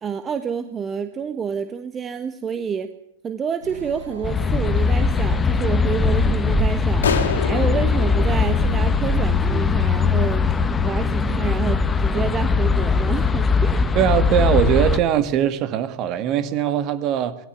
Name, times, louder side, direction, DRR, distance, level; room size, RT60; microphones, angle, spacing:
voice 1, 0.0-2.9 3.2-13.9, right 7 dB, 20° right, 1.2 m, -28 dB
sound 1, 3.6-8.7, right 2 dB, 75° right, 6.2 m, -40 dB
sound 2, 4.2-15.0, left 4 dB, 15° left, 1.4 m, -20 dB
sound 3, 7.0-9.6, left 6 dB, 70° left, 2.9 m, -27 dB
voice 2, 14.0-17.4, right 10 dB, 35° right, 2.0 m, -21 dB
19.0 x 16.5 x 9.9 m
figure-of-eight pair, 100°, 0 cm